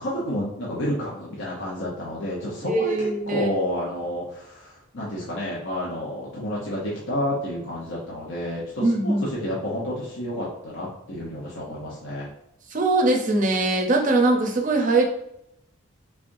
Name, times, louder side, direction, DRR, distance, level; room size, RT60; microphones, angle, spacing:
voice 1, 0.0-12.3, left 1 dB, 55° left, -5 dB, 0.7 m, -30 dB
voice 2, 2.7-3.5 8.8-9.3 12.7-15.0, right 2 dB, 35° right, 1 dB, 0.6 m, -21 dB
3.6 x 3.3 x 2.6 m, 0.78 s
head